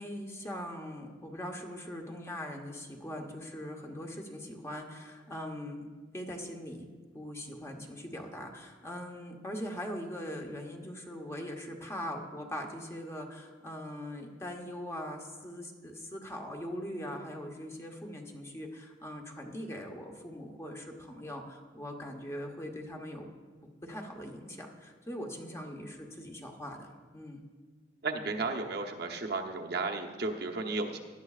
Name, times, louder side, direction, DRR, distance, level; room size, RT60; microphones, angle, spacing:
voice 1, 0.0-5.9 6.1-6.9 7.1-23.3 23.8-27.4, equal, 15° left, 2 dB, 1.0 m, -41 dB
voice 2, 28.0-31.0, right 3 dB, 60° right, 2 dB, 0.9 m, -34 dB
17.0 x 12.0 x 2.4 m, 1.4 s
head